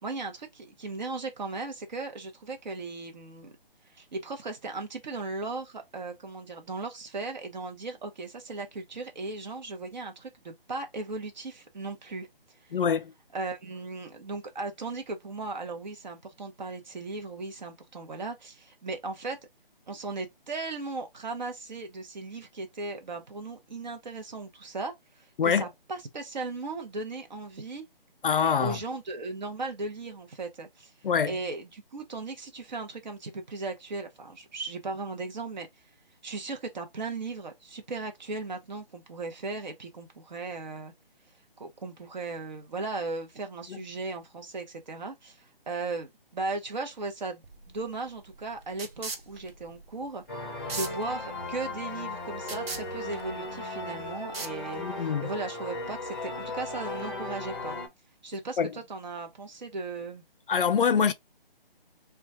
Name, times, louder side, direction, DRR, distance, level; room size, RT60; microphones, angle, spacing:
voice 1, 0.0-3.5 3.9-12.3 12.6-12.7 13.3-19.4 19.9-27.8 28.6-30.9 31.2-35.7 36.2-40.9 41.6-50.2 50.7-57.8 58.2-60.2, right 3 dB, 50° right, 0.8 m, -37 dB
voice 2, 12.7-13.1 25.4-25.6 28.2-28.8 31.0-31.4 43.7-43.8 54.8-55.3 58.6-58.7 60.5-61.1, left 7 dB, 65° left, 0.5 m, -25 dB
sound 1, 47.4-55.1, right 4 dB, 80° right, 0.8 m, -42 dB
sound 2, 50.3-57.9, left 2 dB, 20° left, 0.6 m, -36 dB
2.3 x 2.2 x 3.9 m
figure-of-eight pair, 155°, 30 cm